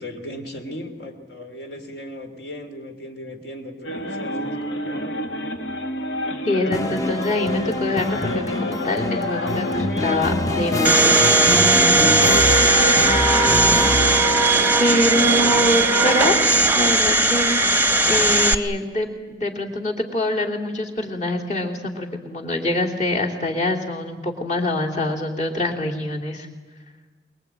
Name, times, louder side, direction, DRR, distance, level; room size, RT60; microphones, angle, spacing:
voice 1, 0.0-5.1 14.8-15.6, equal, 65° left, 5 dB, 3.0 m, -36 dB
sound 1, 3.8-16.7, left 1 dB, 90° left, 2.0 m, -29 dB
voice 2, 6.4-12.5 14.8-16.4 16.7-26.5, left 1 dB, 40° left, 0 dB, 3.0 m, -25 dB
sound 2, 6.7-14.6, left 1 dB, 20° left, 0.7 m, -25 dB
Domestic sounds home sounds, 10.8-18.5, right 3 dB, 10° right, 0.8 m, -17 dB
24.0 x 22.0 x 9.0 m, 1.4 s
head